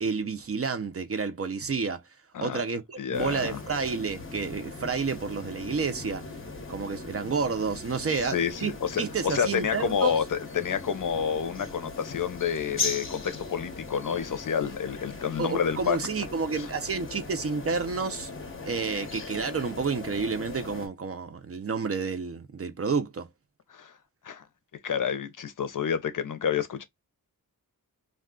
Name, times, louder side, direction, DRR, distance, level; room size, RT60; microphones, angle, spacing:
voice 1, 0.0-2.0 2.4-6.2 6.7-8.7 9.0-10.2 15.4-18.3 18.6-23.3, right 5 dB, 40° right, 0.5 m, -30 dB
voice 2, 3.0-3.6 8.2-16.0 16.6-16.7 23.7-23.9 24.2-24.4 24.8-26.8, left 7 dB, 60° left, 0.6 m, -29 dB
sound 1, 3.1-20.9, left 3 dB, 35° left, 0.9 m, -39 dB
2.3 x 2.3 x 3.5 m
wide cardioid pair, 130°, 35 cm